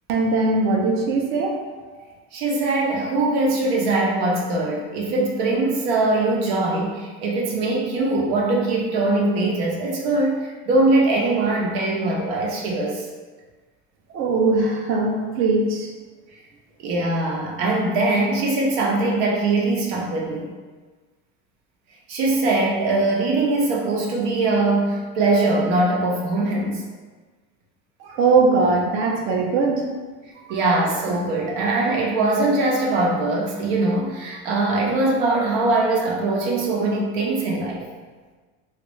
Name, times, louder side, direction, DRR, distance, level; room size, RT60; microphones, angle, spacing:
voice 1, 0.1-1.5 14.1-15.9 28.0-29.9 30.5-30.6, right 3 dB, 45° right, 1 dB, 0.6 m, -20 dB
voice 2, 2.3-13.1 16.8-20.5 22.1-26.8 30.2-37.8, right 2 dB, 80° right, -2 dB, 0.8 m, -22 dB
3.2 x 2.4 x 3.0 m, 1.3 s
cardioid pair, 145°, 30 cm